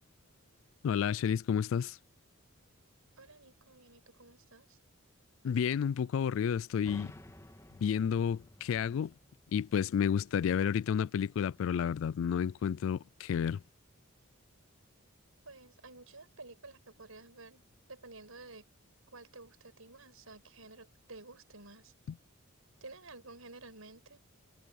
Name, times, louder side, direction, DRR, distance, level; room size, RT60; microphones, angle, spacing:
voice 1, 0.8-2.0 5.4-7.1 7.8-9.1 9.5-13.6, left 7 dB, 70° left, 0.3 m, -31 dB
voice 2, 3.2-4.8 15.4-18.6 19.1-21.9 22.8-24.2, right 3 dB, 90° right, 5.7 m, -52 dB
sound 1, 6.9-10.5, left 1 dB, 15° left, 1.7 m, -55 dB
head